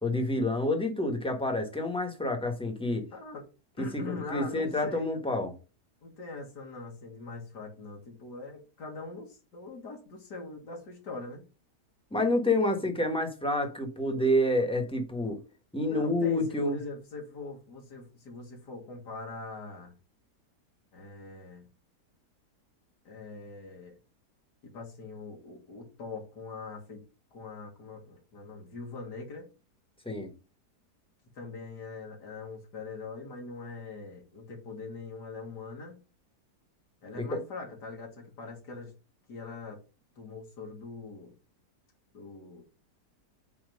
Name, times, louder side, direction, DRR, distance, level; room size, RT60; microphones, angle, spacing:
voice 1, 0.0-3.0 3.8-5.5 12.1-15.4 15.7-16.8 30.0-30.3 37.2-37.4, left 1 dB, 5° left, 1.1 m, -28 dB
voice 2, 3.1-3.5 3.8-5.2 6.0-11.4 15.8-19.9 20.9-21.6 23.1-23.9 24.6-27.0 27.3-29.5 31.4-36.0 37.0-38.9 39.3-39.8 40.2-41.3 42.1-42.6, left 3 dB, 85° left, 2.5 m, -42 dB
8.8 x 3.0 x 5.2 m
omnidirectional pair, 1.7 m